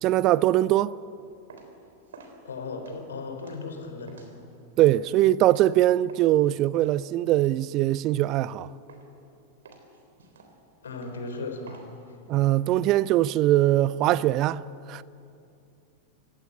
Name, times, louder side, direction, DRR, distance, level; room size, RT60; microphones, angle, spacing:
voice 1, 0.0-1.0 4.8-8.7 12.3-14.6 14.9-15.0, right 14 dB, 40° right, 0.5 m, -22 dB
sound 1, 1.2-6.4 6.7-8.6 8.9-9.3 9.6-12.4, right 4 dB, 65° right, 3.6 m, -51 dB
voice 2, 2.4-4.4 10.8-12.2, left 3 dB, 70° left, 3.8 m, -37 dB
27.5 x 16.0 x 9.9 m
figure-of-eight pair, 90°, 0 cm